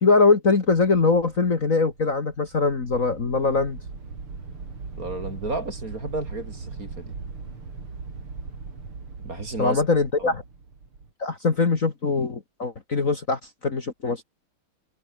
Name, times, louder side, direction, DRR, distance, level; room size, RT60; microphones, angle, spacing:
voice 1, 0.0-3.8 9.6-10.4 11.2-14.2, left 4 dB, 40° left, 2.2 m, -22 dB
sound 1, 0.7-11.1, right 4 dB, 75° right, 5.0 m, -40 dB
voice 2, 5.0-7.1 9.2-9.8 10.2-10.3, right 2 dB, 40° right, 4.8 m, -32 dB
omnidirectional pair, 2.4 m